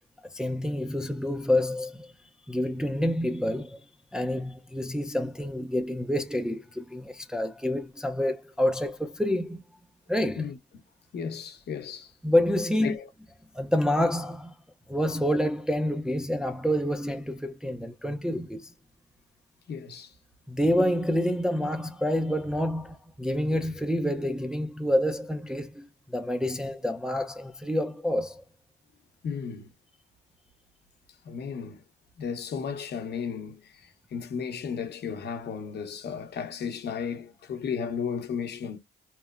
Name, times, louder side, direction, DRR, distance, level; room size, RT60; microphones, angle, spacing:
voice 1, 0.3-2.1 2.5-3.9 4.1-9.6 10.1-10.5 12.2-13.0 13.5-14.6 14.9-18.7 20.5-28.4, left 1 dB, 5° right, 0.4 m, -28 dB
voice 2, 11.1-12.1 12.8-13.1 19.7-20.1 29.2-29.7 31.2-31.8 32.2-38.8, left 6 dB, 55° left, 0.8 m, -34 dB
3.0 x 2.0 x 2.3 m
cardioid pair, 90°, 20 cm